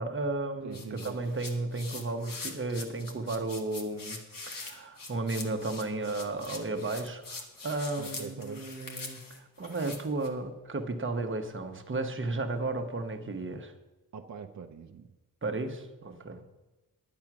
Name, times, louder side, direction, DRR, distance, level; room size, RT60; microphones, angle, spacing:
voice 1, 0.0-13.7 15.4-16.4, right 2 dB, 35° right, 6 dB, 1.0 m, -34 dB
voice 2, 0.6-1.2 8.0-8.6 14.1-15.1, right 6 dB, 55° right, 5 dB, 0.6 m, -43 dB
sound 1, 0.7-10.3, left 3 dB, 65° left, 1.6 m, -43 dB
10.5 x 8.6 x 6.0 m, 1.1 s
wide cardioid pair, 145°, 35 cm